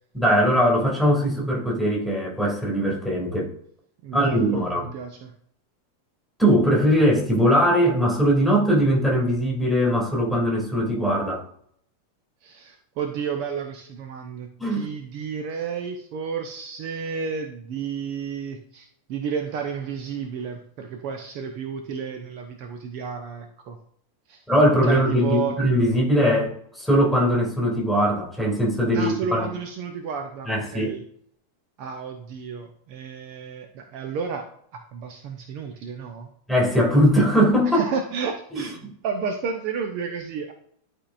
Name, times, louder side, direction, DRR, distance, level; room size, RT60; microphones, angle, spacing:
voice 1, 0.1-3.5 4.1-4.9 6.4-11.4 14.6-14.9 24.5-29.5 30.5-30.9 36.5-37.8 38.5-38.6, equal, ahead, -2 dB, 2.6 m, -20 dB
voice 2, 4.0-4.6 4.9-5.3 12.4-23.8 24.3-24.4 24.8-25.6 28.9-31.0 31.8-34.5 34.7-36.3 37.7-40.5, right 6 dB, 45° right, 5 dB, 0.8 m, -32 dB
11.5 x 4.6 x 2.5 m, 0.66 s
figure-of-eight pair, 90°, 0 cm